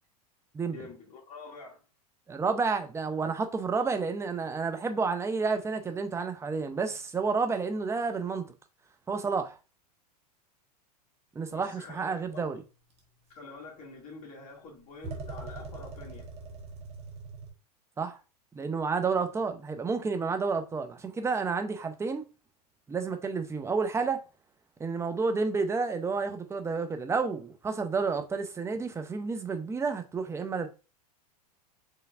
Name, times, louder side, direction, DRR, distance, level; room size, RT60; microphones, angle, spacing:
voice 1, 0.7-1.8 11.5-12.6 13.3-16.2, left 3 dB, 40° left, 2.1 m, -47 dB
voice 2, 2.3-8.5 9.1-9.6 11.3-12.6 18.0-18.2 18.5-22.2 22.9-24.2 24.8-30.7, right 4 dB, 15° right, 0.6 m, -30 dB
sound 1, 13.0-13.1 15.0-17.5, right 3 dB, 30° right, 1.4 m, -41 dB
4.6 x 3.2 x 2.4 m
hypercardioid pair, 105°, 21 cm